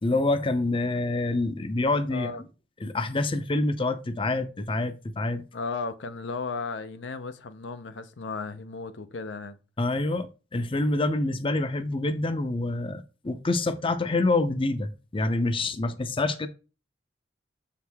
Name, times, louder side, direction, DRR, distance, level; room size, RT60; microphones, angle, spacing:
voice 1, 0.0-2.3 2.8-5.4 9.8-16.5, left 2 dB, 30° left, 0.6 m, -27 dB
voice 2, 2.1-2.4 5.5-9.6, left 4 dB, 85° left, 0.7 m, -35 dB
7.2 x 4.7 x 3.5 m
head